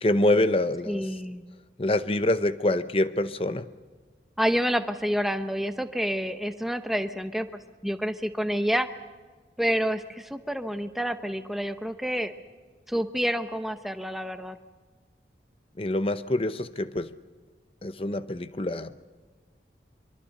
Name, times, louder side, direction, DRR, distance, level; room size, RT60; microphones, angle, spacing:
voice 1, 0.0-1.0 1.8-3.7 15.8-17.1 17.8-18.9, left 1 dB, 30° left, 12 dB, 0.8 m, -25 dB
voice 2, 0.9-1.4 4.4-7.5 7.8-8.9 9.6-12.3 12.9-14.6, equal, ahead, 8 dB, 0.9 m, -28 dB
24.5 x 23.0 x 6.6 m, 1.4 s
head